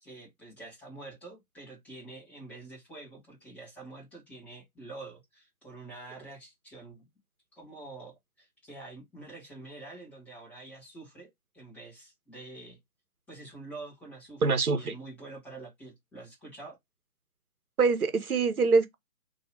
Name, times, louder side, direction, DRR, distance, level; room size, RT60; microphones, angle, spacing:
voice 1, 0.0-7.1 7.5-11.3 11.5-12.8 13.3-14.4 14.7-16.8, right 2 dB, 5° left, 1.1 m, -46 dB
voice 2, 14.4-14.9 17.8-19.0, right 4 dB, 70° right, 1.0 m, -24 dB
2.8 x 2.7 x 4.3 m
figure-of-eight pair, 145°, 45 cm